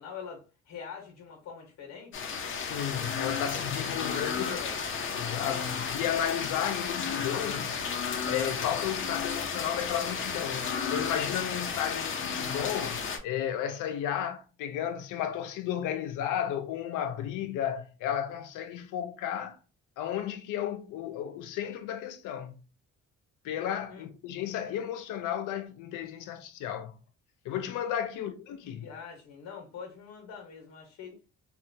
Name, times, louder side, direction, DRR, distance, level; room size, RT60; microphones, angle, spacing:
voice 1, 0.0-2.2 3.7-4.8 23.9-24.1 28.1-28.3 28.6-31.2, left 6 dB, 65° left, 0.9 m, -44 dB
sound 1, 2.1-13.2, left 6 dB, 40° left, 0.6 m, -33 dB
voice 2, 2.5-4.6 5.1-7.8 8.2-19.6 20.0-22.5 23.4-26.9 27.4-28.9, left 10 dB, 85° left, 0.5 m, -33 dB
2.7 x 2.2 x 2.6 m
cardioid pair, 90°, 30 cm